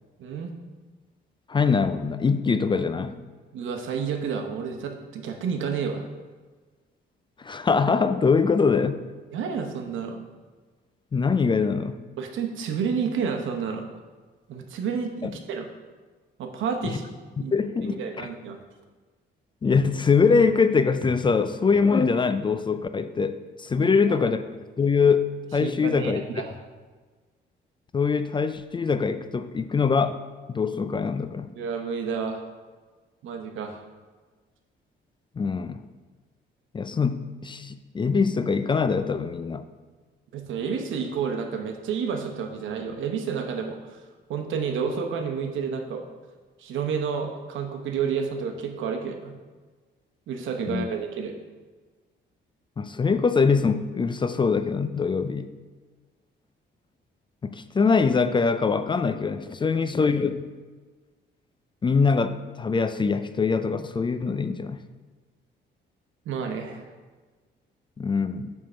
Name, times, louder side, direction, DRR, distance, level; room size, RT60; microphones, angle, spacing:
voice 1, 0.2-0.5 3.5-6.0 9.3-10.2 12.2-13.9 14.5-15.7 16.4-17.0 17.4-17.5 17.8-18.6 23.8-23.9 25.6-26.6 31.5-32.4 33.2-33.8 40.3-44.0 44.3-46.0 46.6-49.3 50.3-51.3 66.2-66.9, right 6 dB, 80° right, 4 dB, 0.9 m, -30 dB
voice 2, 1.5-3.2 7.4-9.0 11.1-12.0 15.2-15.3 16.8-17.0 17.5-18.0 19.6-24.4 24.8-26.2 27.9-30.2 30.5-31.5 35.4-35.8 36.7-39.7 50.7-50.9 52.8-55.5 57.4-60.5 61.8-64.8 68.0-68.5, left 5 dB, 25° left, 11 dB, 0.3 m, -23 dB
7.6 x 3.7 x 5.6 m, 1.4 s
cardioid pair, 90°, 20 cm